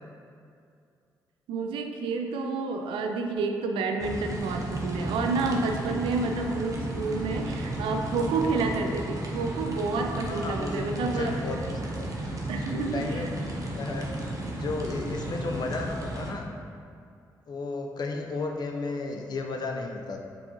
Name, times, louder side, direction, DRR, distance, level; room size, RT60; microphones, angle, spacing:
voice 1, 1.5-11.4 12.5-13.3, right 3 dB, 80° right, 4 dB, 0.4 m, -29 dB
sound 1, 4.0-16.3, right 1 dB, 40° right, 0.9 m, -34 dB
voice 2, 10.3-12.1 12.7-13.3 13.7-14.2 14.5-16.5 17.5-20.2, left 3 dB, 50° left, 3 dB, 0.5 m, -33 dB
6.8 x 2.3 x 2.9 m, 2.4 s
supercardioid pair, 55°, 9 cm